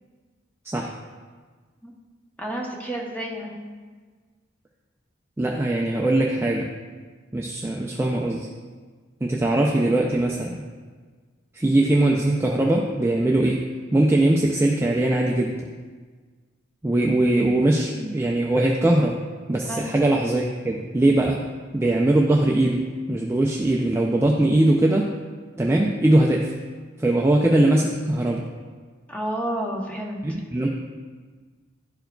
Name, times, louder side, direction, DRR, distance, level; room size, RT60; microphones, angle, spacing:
voice 1, 2.4-3.6 19.6-19.9 29.1-30.4, right 1 dB, 10° left, -1 dB, 0.8 m, -30 dB
voice 2, 5.4-6.7 7.3-8.5 9.2-10.6 11.5-13.7 13.9-15.6 16.8-19.2 19.5-21.5 21.7-25.1 25.6-26.5 27.0-28.4 30.2-30.7, right 1 dB, 15° right, -1 dB, 0.3 m, -21 dB
11.5 x 4.6 x 2.2 m, 1.5 s
head